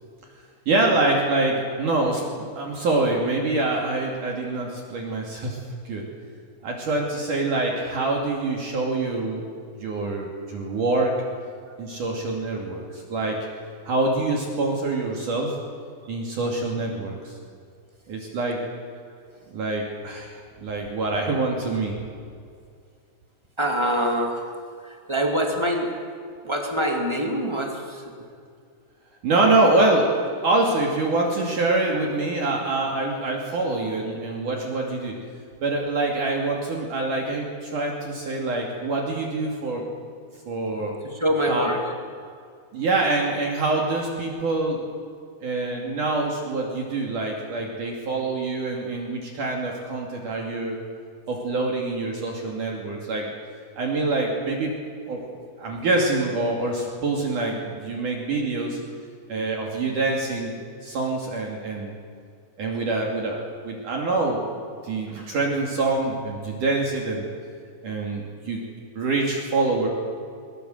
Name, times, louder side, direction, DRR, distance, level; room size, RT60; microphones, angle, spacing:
voice 1, 0.7-5.6 5.9-6.0 6.6-9.4 9.8-11.1 11.8-13.4 13.9-15.5 16.1-17.3 18.1-18.6 19.5-20.3 20.6-22.0 29.2-35.2 35.6-39.8 40.5-40.9 41.5-41.7 42.7-44.8 45.4-50.8 51.3-53.3 53.8-54.7 55.1-58.8 59.3-60.5 60.8-61.9 62.6-64.4 64.8-67.3 67.8-68.6 69.0-69.9, right 2 dB, 50° right, -1 dB, 3.6 m, -25 dB
voice 2, 23.6-26.1 26.4-28.3 41.0-41.9, equal, 15° right, 1 dB, 0.8 m, -26 dB
22.0 x 22.0 x 7.9 m, 2.3 s
omnidirectional pair, 5.2 m